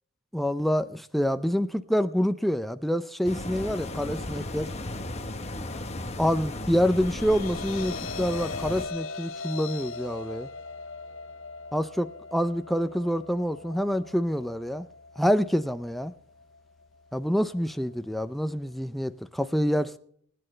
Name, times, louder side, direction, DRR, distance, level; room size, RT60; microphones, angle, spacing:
voice 1, 0.3-4.7 6.2-10.5 11.7-14.8 15.2-16.1 17.1-20.0, equal, ahead, 0.5 m, -27 dB
sound 1, 3.2-8.9, left 1 dB, 35° left, 1.1 m, -35 dB
sound 2, 6.5-18.8, left 4 dB, 75° left, 0.8 m, -41 dB
20.0 x 10.0 x 3.3 m
head